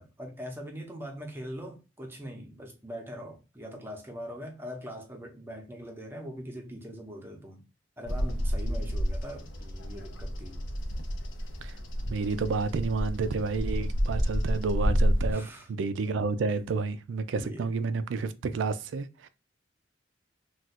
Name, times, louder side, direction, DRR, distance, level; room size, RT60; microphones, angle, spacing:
voice 1, 0.0-7.6 8.0-10.6 15.3-15.7 17.3-17.8, equal, 10° right, 0.7 m, -42 dB
Bird vocalization bird call bird song, 8.1-15.3, equal, 85° left, 0.6 m, -30 dB
voice 2, 12.1-19.3, right 4 dB, 90° right, 0.4 m, -30 dB
2.4 x 2.3 x 4.0 m
head